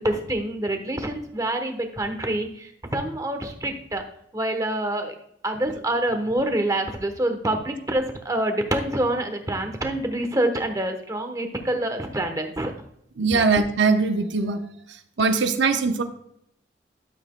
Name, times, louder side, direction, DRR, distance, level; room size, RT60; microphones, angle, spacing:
voice 1, 0.0-4.0 4.3-5.1 5.4-12.7 13.3-13.4, right 1 dB, 20° right, 6 dB, 1.0 m, -26 dB
voice 2, 13.2-14.6 15.2-16.0, right 4 dB, 80° right, 6 dB, 0.8 m, -21 dB
12.5 x 7.5 x 2.2 m, 0.73 s
head